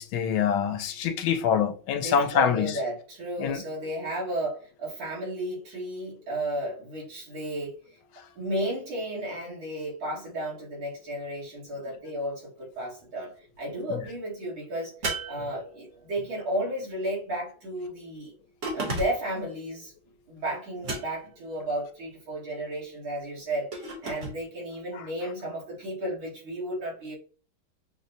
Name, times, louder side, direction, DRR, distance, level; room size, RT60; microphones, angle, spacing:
voice 1, 0.0-2.7 3.4-3.6, left 7 dB, 90° left, 1.4 m, -25 dB
voice 2, 1.9-7.8 8.4-14.9 15.3-18.3 18.7-19.9 20.3-27.1, right 1 dB, 80° right, 2.5 m, -33 dB
sound 1, 15.0-16.1 18.6-19.4 20.8-21.4 23.7-24.4, right 2 dB, 45° right, 1.2 m, -34 dB
6.3 x 2.1 x 2.7 m
omnidirectional pair, 2.2 m